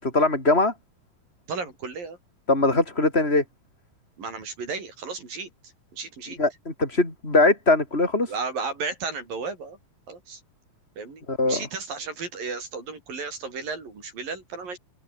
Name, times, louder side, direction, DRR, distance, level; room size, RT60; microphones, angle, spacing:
voice 1, 0.0-0.7 2.5-3.4 6.4-8.3 11.3-11.7, left 2 dB, 15° left, 7.8 m, -21 dB
voice 2, 1.5-2.2 4.2-5.5 5.9-6.4 8.3-9.8 10.1-10.4 11.0-14.8, right 4 dB, 75° right, 8.0 m, -34 dB
open air
omnidirectional pair, 4.0 m